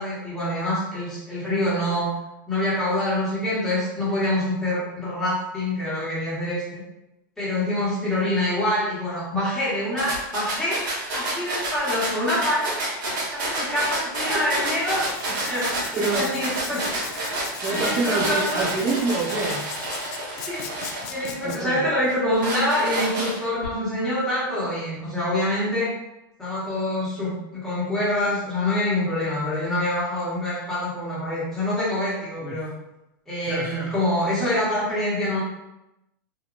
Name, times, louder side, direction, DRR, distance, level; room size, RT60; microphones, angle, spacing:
voice 1, 0.0-2.1 2.5-6.8 7.4-10.8 11.1-12.7 13.3-15.0 15.4-16.8 17.7-18.6 20.5-25.9 26.4-32.7 33.3-35.4, left 1 dB, 5° left, -10 dB, 1.3 m, -26 dB
sound 1, 10.0-21.6 22.1-23.6, right 1 dB, 70° right, 1.1 m, -29 dB
voice 2, 14.3-14.7 15.9-16.2 17.6-19.6 21.4-21.8 32.4-32.6 33.5-33.9, right 3 dB, 25° right, -4 dB, 0.4 m, -26 dB
Writing, 14.8-21.6, left 7 dB, 55° left, 0.4 m, -39 dB
2.8 x 2.6 x 2.5 m, 0.92 s
supercardioid pair, 140°, 11 cm